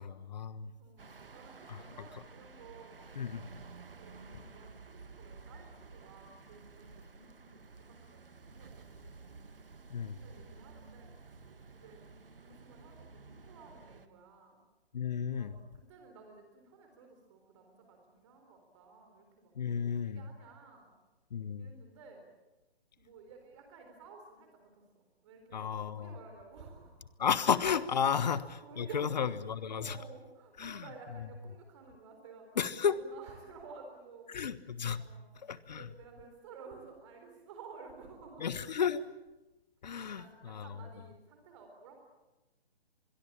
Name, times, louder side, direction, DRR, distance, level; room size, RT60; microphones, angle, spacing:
voice 1, 0.0-0.7 1.7-1.8 3.1-3.4 9.9-10.2 14.9-15.5 19.6-20.3 21.3-21.7 25.5-26.1 27.2-28.4 28.8-30.0 30.6-30.9 32.6-33.0 34.3-35.0 35.4-35.9 38.4-39.1 39.8-40.7, left 7 dB, 45° left, 16 dB, 1.4 m, -33 dB
voice 2, 0.8-3.2 3.9-9.3 10.0-11.1 11.7-12.1 12.4-14.6 15.4-20.9 21.6-22.3 23.0-27.1 28.1-28.2 28.6-29.1 29.8-34.3 34.9-35.4 35.7-38.7 40.0-42.0, right 4 dB, 30° right, 4 dB, 4.1 m, -53 dB
sound 1, 1.0-14.1, right 4 dB, 60° right, 1.8 m, -53 dB
25.5 x 22.5 x 8.7 m, 1.1 s
figure-of-eight pair, 135°, 31 cm